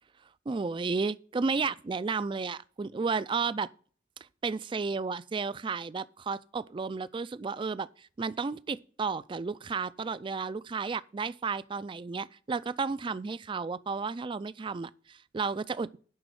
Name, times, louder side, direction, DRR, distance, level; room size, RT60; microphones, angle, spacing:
voice 1, 0.5-3.7 4.4-16.0, right 4 dB, 25° right, 0.3 m, -33 dB
11.0 x 4.2 x 7.8 m
head